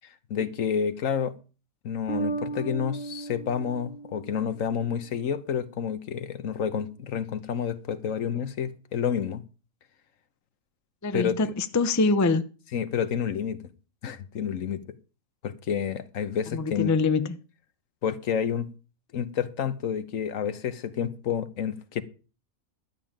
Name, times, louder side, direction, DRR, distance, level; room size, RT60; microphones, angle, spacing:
voice 1, 0.3-1.3 1.8-9.4 11.1-11.3 12.7-13.6 14.0-14.8 15.4-16.9 18.0-18.7 19.1-22.0, left 8 dB, 75° left, 1.4 m, -29 dB
Bass guitar, 2.1-5.1, right 4 dB, 50° left, 1.7 m, -36 dB
voice 2, 11.0-12.4 16.5-17.4, left 3 dB, 20° left, 0.5 m, -24 dB
12.0 x 5.6 x 8.8 m
omnidirectional pair, 1.4 m